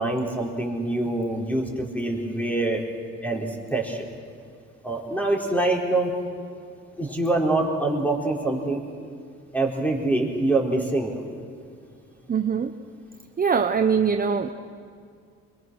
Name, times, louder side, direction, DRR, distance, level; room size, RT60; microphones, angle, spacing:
voice 1, 0.0-2.8 3.2-4.1 4.8-6.1 7.0-8.8 9.5-11.2, right 2 dB, 5° left, 0 dB, 4.5 m, -25 dB
voice 2, 12.3-12.7 13.4-14.5, right 6 dB, 30° right, 7 dB, 0.9 m, -22 dB
23.5 x 22.5 x 6.3 m, 2.3 s
cardioid pair, 90°, 30 cm